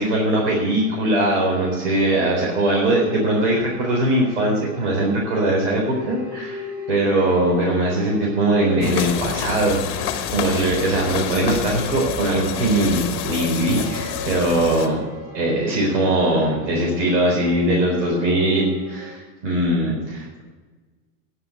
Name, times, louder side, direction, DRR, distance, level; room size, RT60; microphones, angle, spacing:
voice 1, 0.0-15.0 15.3-20.4, right 1 dB, 75° right, -3 dB, 4.1 m, -21 dB
sound 1, 0.6-19.2, left 1 dB, 30° right, 2.7 m, -39 dB
sound 2, 8.8-14.9, left 9 dB, 35° left, 1.2 m, -28 dB
10.5 x 8.0 x 9.2 m, 1.3 s
supercardioid pair, 170°, 36 cm